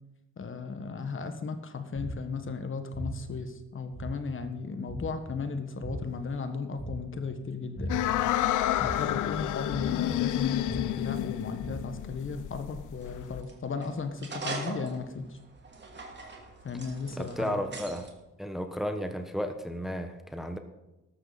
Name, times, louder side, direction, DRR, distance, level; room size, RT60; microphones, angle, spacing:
voice 1, 0.4-7.9 8.8-15.4 16.6-17.6, left 4 dB, 40° left, 8 dB, 1.5 m, -35 dB
sound 1, 1.9-2.4 2.9-3.3 3.9-4.3 4.9-5.3 5.8-6.2 6.8-7.2 7.8-8.2 8.8-9.2 9.7-10.1 10.6-11.0 11.6-11.7, right 1 dB, 15° left, 5.5 m, -40 dB
sound 2, 7.9-13.4, left 13 dB, 80° left, 0.7 m, -30 dB
sound 3, 13.0-18.1, right 3 dB, 35° right, 2.6 m, -42 dB
voice 2, 17.2-18.1 18.4-20.6, equal, ahead, 6 dB, 1.1 m, -33 dB
13.0 x 13.0 x 4.1 m, 1.0 s
cardioid pair, 90°, 30 cm